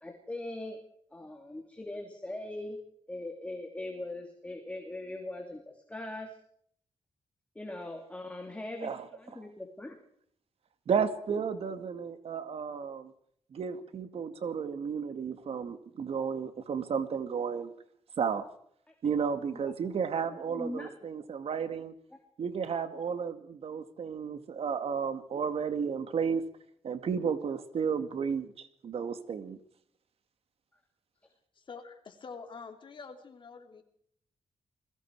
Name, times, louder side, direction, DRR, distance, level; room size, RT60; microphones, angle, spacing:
voice 1, 0.0-0.8 1.1-2.8 3.1-6.3 7.5-10.0 19.6-19.7 20.2-20.9, left 1 dB, 10° left, 2 dB, 2.9 m, -40 dB
voice 2, 10.9-13.1 13.5-17.7 18.2-18.4 19.0-21.9 22.4-26.4 26.8-29.6, right 6 dB, 65° right, 10 dB, 2.1 m, -33 dB
voice 3, 31.6-33.8, left 5 dB, 50° left, 5 dB, 3.4 m, -46 dB
29.5 x 21.5 x 4.8 m, 0.65 s
wide cardioid pair, 135°, 11 cm